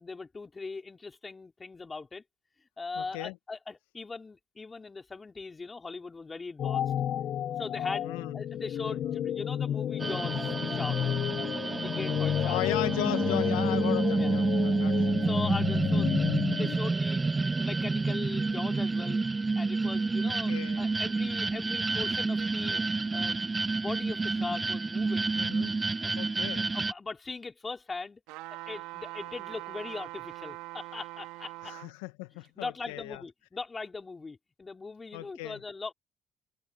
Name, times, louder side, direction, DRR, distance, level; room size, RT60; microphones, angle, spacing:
voice 1, 0.0-2.2 2.8-6.8 7.6-8.1 8.3-11.0 11.7-12.6 14.1-14.3 15.1-17.3 17.6-19.2 19.6-22.8 23.1-23.4 23.7-25.3 26.0-26.1 26.7-28.2 28.5-31.7 32.6-35.9, left 4 dB, 30° left, 4.8 m, -40 dB
voice 2, 2.9-3.4 8.0-8.4 8.8-9.2 12.4-15.0 20.5-20.9 25.3-25.7 26.1-26.7 31.6-33.2 35.1-35.6, left 22 dB, 85° left, 1.7 m, -37 dB
sound 1, 6.6-16.8, left 10 dB, 60° left, 1.1 m, -31 dB
sound 2, 10.0-26.9, right 3 dB, 25° right, 1.1 m, -29 dB
sound 3, 28.3-31.9 32.4-32.5, right 20 dB, 80° right, 3.4 m, -42 dB
hypercardioid pair, 60°, 0 cm